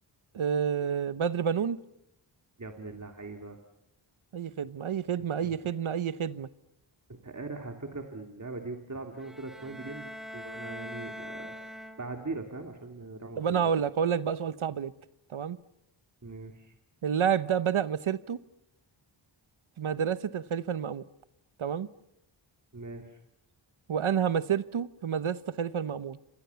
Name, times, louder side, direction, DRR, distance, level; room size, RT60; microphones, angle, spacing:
voice 1, 0.3-1.8 4.3-6.5 13.4-14.9 15.3-15.6 17.0-18.4 19.8-21.0 21.6-21.9 23.9-26.2, right 8 dB, 75° right, 1.0 m, -29 dB
voice 2, 2.6-3.6 5.4-5.5 7.1-11.5 12.0-13.7 16.2-16.7 22.7-23.2, right 3 dB, 35° right, 2.7 m, -41 dB
sound 1, 9.2-12.4, equal, ahead, 2.3 m, -43 dB
29.0 x 26.0 x 7.0 m
wide cardioid pair, 80°, 49 cm